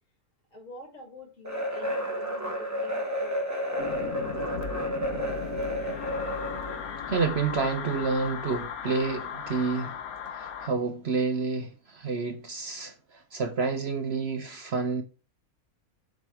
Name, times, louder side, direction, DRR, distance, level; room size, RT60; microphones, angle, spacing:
voice 1, 0.5-3.9, left 1 dB, 60° left, 2.5 m, -47 dB
sound 1, 1.4-6.9, equal, 10° right, 1.4 m, -31 dB
sound 2, 3.8-10.7, left 7 dB, 80° left, 1.3 m, -37 dB
voice 2, 7.1-10.0 10.3-15.0, right 4 dB, 50° right, 0.9 m, -29 dB
7.9 x 3.9 x 4.4 m
omnidirectional pair, 1.5 m